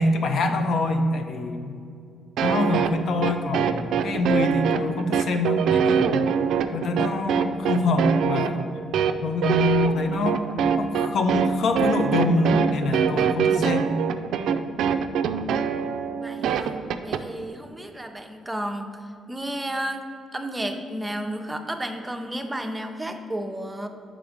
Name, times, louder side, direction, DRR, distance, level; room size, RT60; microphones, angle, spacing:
voice 1, 0.0-1.7 2.4-6.2 6.7-8.6 9.2-10.4 10.8-13.9, left 2 dB, 65° left, 6 dB, 0.6 m, -25 dB
sound 1, 2.4-17.2, right 7 dB, 75° right, 0.3 m, -23 dB
voice 2, 16.2-16.7 17.0-23.9, right 1 dB, 10° right, 6 dB, 0.6 m, -32 dB
5.9 x 5.0 x 5.1 m, 2.4 s
cardioid pair, 90°, 0 cm